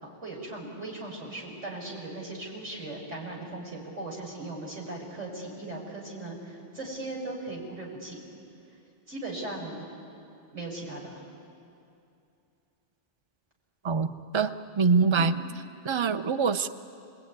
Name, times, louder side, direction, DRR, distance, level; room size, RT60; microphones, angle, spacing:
voice 1, 0.0-8.2 9.1-9.8 10.5-11.2 15.0-15.2, right 2 dB, 85° right, -2 dB, 6.0 m, -38 dB
voice 2, 13.8-15.4 15.8-16.7, right 5 dB, 30° right, 10 dB, 0.7 m, -25 dB
27.0 x 21.0 x 9.6 m, 2.6 s
omnidirectional pair, 1.2 m